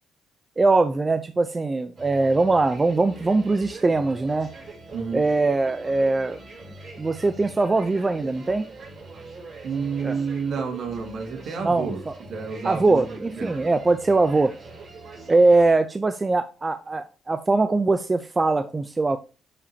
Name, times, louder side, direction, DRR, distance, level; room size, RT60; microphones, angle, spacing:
voice 1, 0.6-4.5 5.1-6.4 7.0-8.7 10.0-10.2 11.6-12.1 12.6-14.5 15.3-19.2, right 3 dB, 25° right, 0.6 m, -21 dB
sound 1, 2.0-15.7, right 3 dB, 40° right, 5.0 m, -42 dB
voice 2, 4.9-5.2 9.6-12.0 12.3-13.0 13.4-13.7, right 5 dB, 65° right, 2.2 m, -30 dB
11.0 x 4.9 x 2.9 m
cardioid pair, 90°, 0 cm